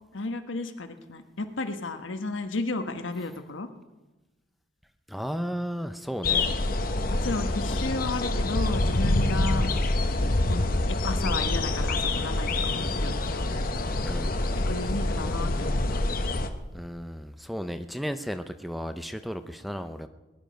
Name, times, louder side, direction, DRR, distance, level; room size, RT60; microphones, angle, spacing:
voice 1, 0.1-3.7 7.1-9.7 10.5-13.5 14.6-16.0, left 3 dB, 80° left, 7 dB, 1.3 m, -33 dB
voice 2, 5.1-6.5 7.7-7.9 14.0-14.4 16.7-20.1, equal, ahead, 9 dB, 0.5 m, -34 dB
sound 1, 6.2-16.5, left 2 dB, 45° left, 0.9 m, -26 dB
20.5 x 11.5 x 5.2 m, 1.1 s
head